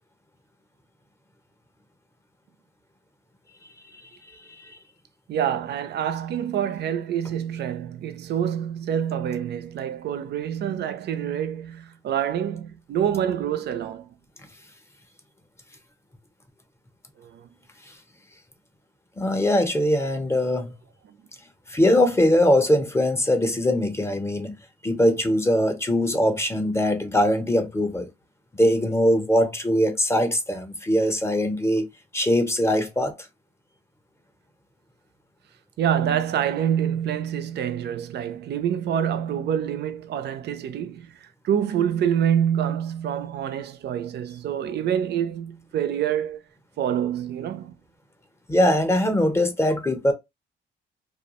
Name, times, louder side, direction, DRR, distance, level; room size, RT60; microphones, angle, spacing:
voice 1, 5.3-14.1 17.2-17.5 21.1-21.2 35.8-46.4 46.8-47.7, right 9 dB, 60° right, 0.4 m, -26 dB
voice 2, 19.2-20.7 21.7-24.6 24.8-28.1 28.5-31.9 32.1-33.2 48.5-50.1, left 1 dB, 15° left, 0.6 m, -21 dB
2.3 x 2.1 x 2.8 m
cardioid pair, 90°, 20 cm